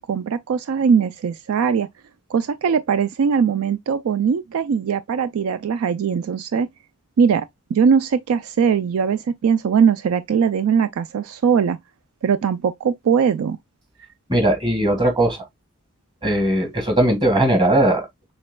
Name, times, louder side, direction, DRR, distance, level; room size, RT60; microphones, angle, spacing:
voice 1, 0.0-1.9 2.3-6.7 7.2-7.5 7.7-11.8 12.2-13.6, right 6 dB, 70° right, 0.3 m, -20 dB
voice 2, 14.3-15.4 16.2-18.3, right 1 dB, 20° right, 1.7 m, -19 dB
6.4 x 3.3 x 2.2 m
head